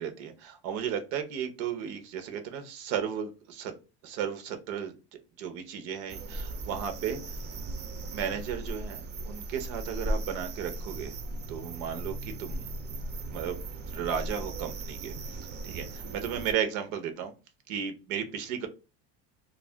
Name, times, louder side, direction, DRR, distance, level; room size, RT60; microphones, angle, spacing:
voice 1, 0.0-3.7 4.0-4.9 5.4-7.2 8.1-11.1 11.5-12.7 13.3-15.1 15.6-17.3 17.7-18.7, right 8 dB, 90° right, 8 dB, 0.8 m, -34 dB
sound 1, 6.1-16.5, right 2 dB, 35° right, 0.4 m, -37 dB
2.4 x 2.1 x 3.2 m, 0.29 s
cardioid pair, 155°, 33 cm